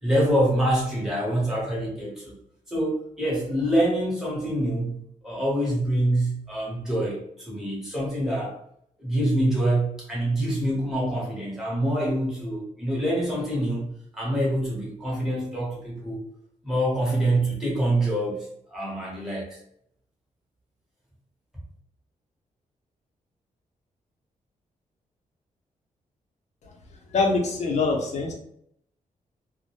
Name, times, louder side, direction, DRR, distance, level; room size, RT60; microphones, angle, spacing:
voice 1, 0.0-2.3 2.7-5.0 5.2-8.5 9.0-16.2 16.6-19.6, right 1 dB, 5° right, -5 dB, 0.9 m, -25 dB
voice 2, 27.1-28.3, left 3 dB, 55° left, 1 dB, 0.6 m, -24 dB
2.1 x 2.0 x 2.9 m, 0.70 s
wide cardioid pair, 135°, 14 cm